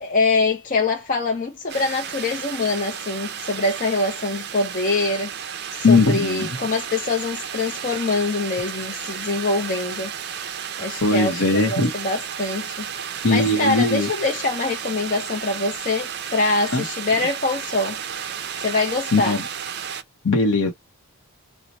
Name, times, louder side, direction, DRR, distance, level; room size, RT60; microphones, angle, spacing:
voice 1, 0.0-5.3 5.7-10.1 10.8-12.8 13.3-18.0 18.6-19.4, left 3 dB, 35° left, 0.5 m, -24 dB
sound 1, 1.7-20.0, right 8 dB, 45° right, 0.5 m, -33 dB
voice 2, 5.8-6.5 11.0-11.9 13.2-14.1 16.7-16.8 19.1-19.4 20.2-20.7, left 3 dB, 70° left, 0.7 m, -19 dB
2.9 x 2.1 x 3.9 m
head